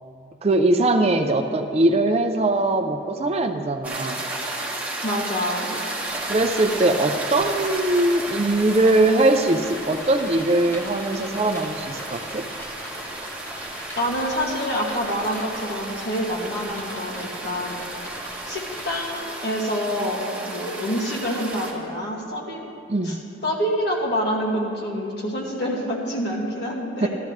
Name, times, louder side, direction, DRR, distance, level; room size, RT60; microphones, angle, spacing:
voice 1, 0.4-4.2 6.2-12.5 22.9-23.2 27.0-27.1, right 2 dB, 35° right, 6 dB, 0.5 m, -21 dB
sound 1, 3.8-21.7, right 2 dB, 10° right, 1.7 m, -34 dB
voice 2, 5.0-5.8 14.0-17.8 18.5-22.7 23.0-23.2 23.4-27.1, equal, 60° left, -4 dB, 2.3 m, -27 dB
sound 2, 6.1-19.2, left 1 dB, 10° left, 0.8 m, -39 dB
14.0 x 13.0 x 3.2 m, 2.4 s
head